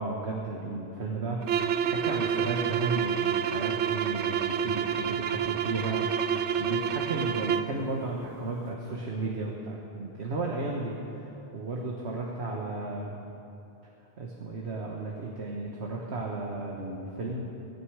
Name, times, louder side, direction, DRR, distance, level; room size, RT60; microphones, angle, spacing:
voice 1, 0.0-6.0 6.4-13.1 14.2-17.4, right 3 dB, 70° right, -2 dB, 1.6 m, -34 dB
sound 1, 1.4-7.8, right 8 dB, 85° right, 0.9 m, -28 dB
22.0 x 9.6 x 4.8 m, 2.8 s
omnidirectional pair, 1.2 m